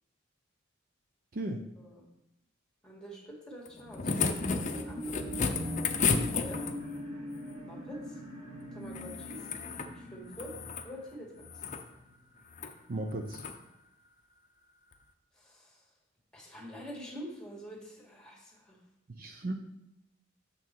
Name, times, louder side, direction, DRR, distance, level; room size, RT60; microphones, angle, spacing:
voice 1, 1.3-1.6 12.9-13.4 19.1-19.5, right 1 dB, 45° right, 4 dB, 0.5 m, -35 dB
voice 2, 2.8-6.6 7.6-8.2 8.7-9.5 9.9-10.5 10.8-11.3 15.4-15.8 16.3-18.8, equal, 5° left, -2 dB, 1.9 m, -46 dB
sound 1, 3.7-7.0 8.9-9.9 10.3-10.9 11.4-11.8 12.5-12.7 13.3-13.6 14.9-15.0, left 5 dB, 40° left, 0.6 m, -33 dB
sound 2, 3.8-11.6 12.1-12.2, equal, 30° right, 2.0 m, -42 dB
6.9 x 5.9 x 4.5 m, 0.85 s
head